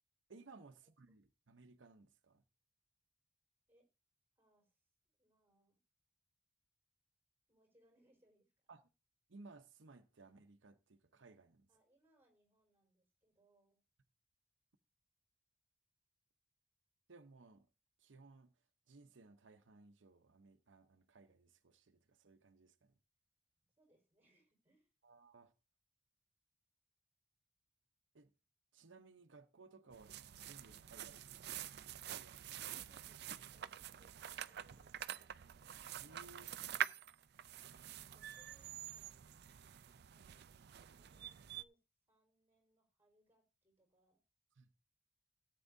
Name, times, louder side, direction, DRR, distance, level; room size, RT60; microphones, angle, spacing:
voice 1, 0.3-2.4 8.7-8.8 9.3-11.7 17.1-17.7 18.0-18.5 18.9-22.9 25.0-25.5 28.1-28.3 28.7-30.1 30.4-31.5 32.1-32.8 36.0-36.5 44.6-44.7, right 3 dB, 90° right, 0.8 m, -61 dB
voice 2, 4.4-4.8 5.2-5.8 7.5-8.7 11.7-13.8 23.6-24.9 32.9-35.6 36.3-36.6 37.9-39.3 40.1-40.6 40.9-41.8 42.1-44.2, right 1 dB, 10° right, 4.5 m, -75 dB
sound 1, 29.9-41.6, right 10 dB, 60° right, 0.4 m, -47 dB
17.0 x 8.4 x 2.7 m
head